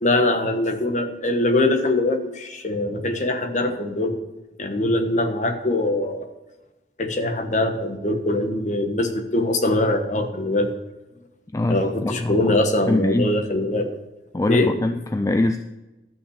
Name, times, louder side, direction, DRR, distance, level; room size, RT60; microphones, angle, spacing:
voice 1, 0.0-4.1 4.6-6.2 7.0-10.7 11.7-14.0 14.5-14.7, left 1 dB, 40° left, 6 dB, 1.2 m, -22 dB
voice 2, 11.5-12.6 12.9-13.3 14.3-15.6, left 2 dB, 20° left, 7 dB, 0.3 m, -23 dB
13.0 x 5.6 x 6.5 m, 1.0 s
head